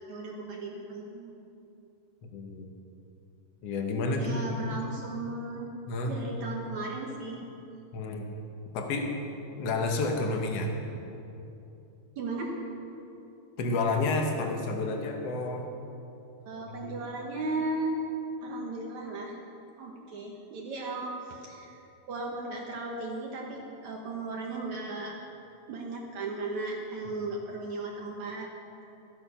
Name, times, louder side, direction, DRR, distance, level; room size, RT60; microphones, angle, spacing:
voice 1, 0.1-1.3 4.1-5.7 6.1-7.5 12.2-12.5 16.5-17.9 18.4-19.4 19.8-21.8 22.1-25.2 25.7-28.5 28.8-28.9, right 3 dB, 65° right, -1 dB, 2.1 m, -36 dB
voice 2, 2.3-2.7 3.6-4.7 5.9-6.1 7.9-8.3 8.7-9.1 9.6-10.7 13.6-15.7 16.7-16.9, left 3 dB, 65° left, 2 dB, 1.6 m, -30 dB
14.0 x 13.0 x 5.6 m, 2.8 s
omnidirectional pair, 4.5 m